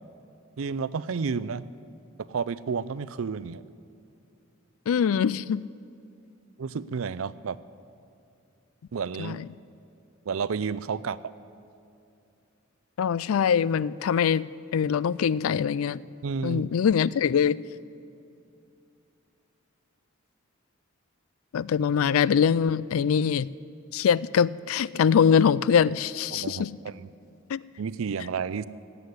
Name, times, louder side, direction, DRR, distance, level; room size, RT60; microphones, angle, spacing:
voice 1, 0.6-1.6 2.2-3.6 6.6-7.6 8.9-9.4 10.3-11.2 16.2-16.6 26.3-27.1 27.8-28.7, right 5 dB, 75° right, 17 dB, 0.5 m, -31 dB
voice 2, 4.9-5.6 9.2-9.4 13.0-14.5 14.7-16.0 16.4-17.6 21.5-23.5 23.9-26.7 27.5-27.6, left 7 dB, 90° left, 20 dB, 0.4 m, -23 dB
16.5 x 8.2 x 9.7 m, 2.6 s
head